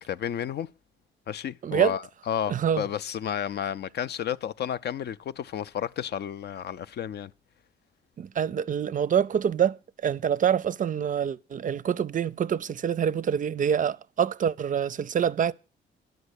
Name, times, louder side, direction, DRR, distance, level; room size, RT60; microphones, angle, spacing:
voice 1, 0.1-0.7 1.3-7.3, left 9 dB, 55° left, 0.5 m, -32 dB
voice 2, 1.6-2.0 2.5-2.8 8.2-15.5, right 8 dB, 40° right, 0.5 m, -26 dB
10.5 x 6.6 x 8.1 m
cardioid pair, 90°, 20 cm